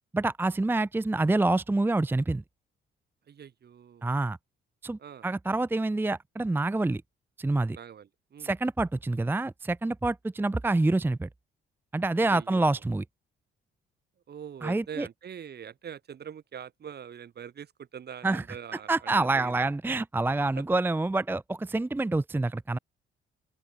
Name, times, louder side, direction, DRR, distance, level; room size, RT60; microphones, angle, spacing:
voice 1, 0.1-2.4 4.0-4.4 4.8-7.0 7.4-7.8 8.4-11.3 11.9-13.0 14.6-15.1 18.2-18.4 18.7-22.8, right 2 dB, 10° right, 0.6 m, -27 dB
voice 2, 3.3-4.0 5.0-5.3 7.7-8.5 12.2-12.8 14.3-19.5 20.5-20.6, right 8 dB, 55° right, 4.8 m, -43 dB
open air
cardioid pair, 90°, 20 cm